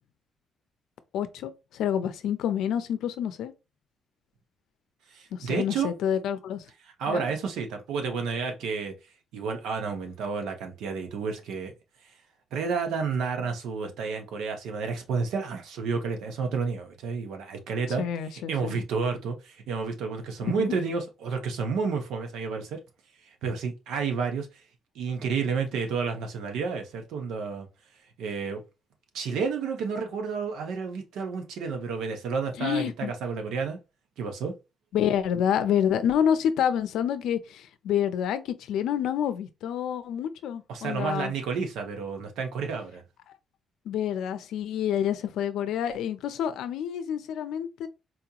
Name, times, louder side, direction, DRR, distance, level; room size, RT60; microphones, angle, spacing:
voice 1, 1.1-3.5 5.3-6.6 7.1-7.3 18.0-18.8 20.4-20.8 32.6-33.1 34.9-41.3 43.9-47.9, left 9 dB, 85° left, 0.5 m, -28 dB
voice 2, 5.1-5.9 7.0-8.9 9.3-11.7 12.5-18.0 18.5-22.8 23.4-24.5 24.9-27.7 28.2-28.6 29.1-33.8 34.2-34.5 40.7-43.0, right 5 dB, 90° right, 0.9 m, -30 dB
4.1 x 2.9 x 2.4 m
cardioid pair, 180°, 0 cm